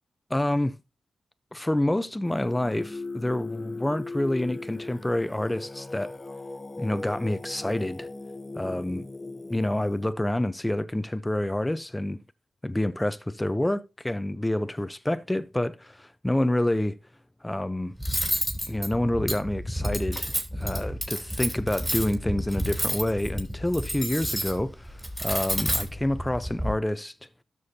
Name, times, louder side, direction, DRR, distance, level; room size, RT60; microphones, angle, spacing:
voice 1, 0.3-0.7 1.5-6.1 6.8-8.1 8.6-9.0 9.5-12.2 12.6-17.0 17.4-17.9 18.7-27.1, left 1 dB, 15° left, 0.8 m, -28 dB
Singing, 2.2-10.1, left 3 dB, 30° left, 1.3 m, -39 dB
Cutlery silverware, 18.0-26.7, equal, 5° right, 3.5 m, -30 dB
12.5 x 6.4 x 2.8 m
supercardioid pair, 40°, 0 cm